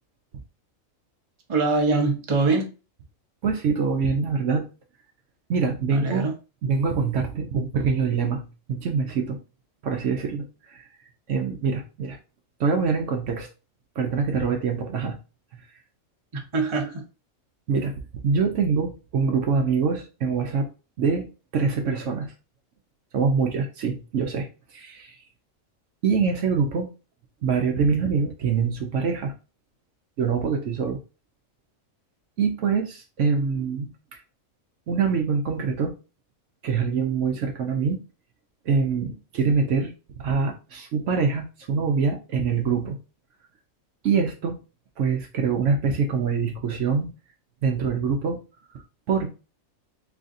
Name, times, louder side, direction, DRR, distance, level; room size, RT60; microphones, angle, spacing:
voice 1, 1.5-2.7 5.9-6.3 16.5-17.0, right 3 dB, 25° right, 0.7 m, -23 dB
voice 2, 3.4-4.6 5.5-6.3 6.6-9.4 9.8-10.9 11.3-12.2 12.6-13.5 14.0-15.2 15.5-15.6 17.7-20.7 21.0-21.3 21.5-22.3 23.1-25.2 26.0-26.9 27.4-29.3 30.2-31.0 32.4-34.2 34.9-35.9 36.6-38.0 38.6-43.0 44.0-44.6 45.0-47.1 47.6-48.4 49.1-49.3, right 5 dB, 65° right, 0.9 m, -24 dB
3.7 x 3.2 x 2.5 m
omnidirectional pair, 1.4 m